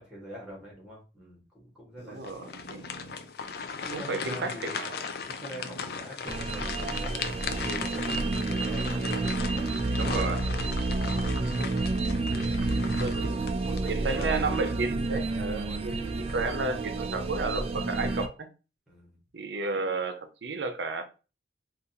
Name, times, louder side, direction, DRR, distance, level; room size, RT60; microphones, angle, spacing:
voice 1, 0.0-2.3 3.6-4.9 5.3-10.1 10.9-12.8 13.1-14.6 15.3-16.1 18.9-19.2, equal, 5° right, 1.5 m, -44 dB
sound 1, 2.0-11.4 12.2-12.7 13.1-13.2 13.5-13.6 14.5-15.6, equal, 80° left, 0.7 m, -52 dB
voice 2, 2.1-2.8 3.9-5.0 10.0-10.5 12.6-13.4 13.9-18.5 19.3-21.0, right 3 dB, 80° right, 0.6 m, -32 dB
sound 2, 2.2-14.9 15.3-15.5 16.1-16.6, left 6 dB, 60° left, 0.3 m, -38 dB
sound 3, 6.3-18.3, right 3 dB, 35° right, 0.3 m, -30 dB
3.8 x 2.5 x 2.7 m
head